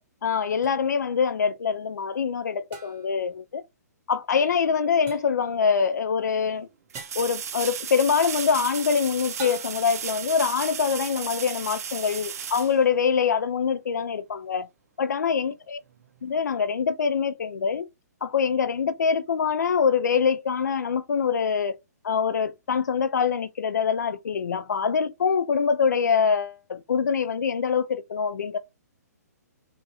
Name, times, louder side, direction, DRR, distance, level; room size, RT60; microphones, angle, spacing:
voice 1, 0.2-3.6 4.1-6.7 7.2-14.7 15.0-15.8 16.2-17.9 18.2-21.8 22.0-28.6, left 6 dB, 80° left, 0.4 m, -24 dB
sound 1, 0.6-0.7 2.7-3.2 5.1-5.4 6.9-7.3 9.4-10.0, right 5 dB, 20° right, 0.8 m, -42 dB
sound 2, 5.5-5.6 6.9-13.5 16.4-16.5, right 8 dB, 60° right, 0.5 m, -35 dB
3.0 x 2.4 x 2.8 m
hypercardioid pair, 140°, 9 cm